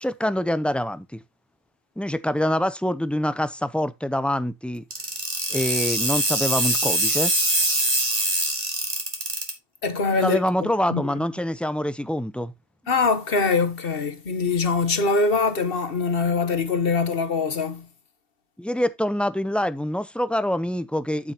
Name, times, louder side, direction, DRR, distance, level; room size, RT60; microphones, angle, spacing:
voice 1, 0.0-1.2 2.0-4.8 5.5-7.3 10.1-12.5 18.6-21.3, left 1 dB, ahead, 0.4 m, -25 dB
sound 1, 4.9-9.5, right 1 dB, 35° right, 2.5 m, -23 dB
voice 2, 9.8-11.0 12.9-17.9, left 4 dB, 60° left, 1.4 m, -23 dB
9.1 x 7.9 x 2.9 m
omnidirectional pair, 1.1 m